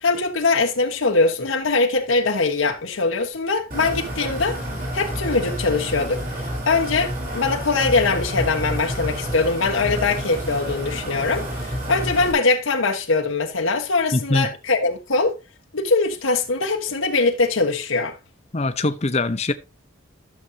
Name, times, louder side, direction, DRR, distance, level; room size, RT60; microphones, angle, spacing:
voice 1, 0.0-4.6 4.9-15.3 15.7-18.2, left 3 dB, 90° left, 1.3 m, -22 dB
sound 1, 3.7-12.3, equal, 45° right, 3.9 m, -29 dB
voice 2, 14.1-14.5 18.5-19.5, left 2 dB, 35° left, 0.7 m, -22 dB
12.5 x 7.1 x 2.8 m
head